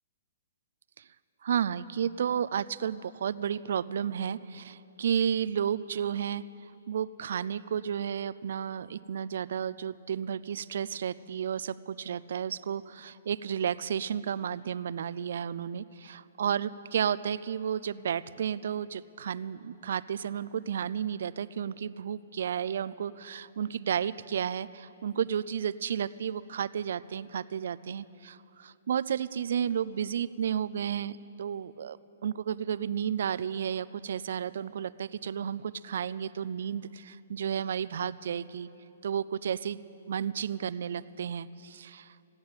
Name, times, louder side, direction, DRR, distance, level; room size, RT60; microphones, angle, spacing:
voice 1, 1.4-6.4 6.9-32.0 32.2-38.7 39.0-39.8 40.1-42.3, right 8 dB, 60° right, 17 dB, 0.4 m, -32 dB
15.5 x 10.5 x 8.9 m, 2.9 s
hypercardioid pair, 170°, 0 cm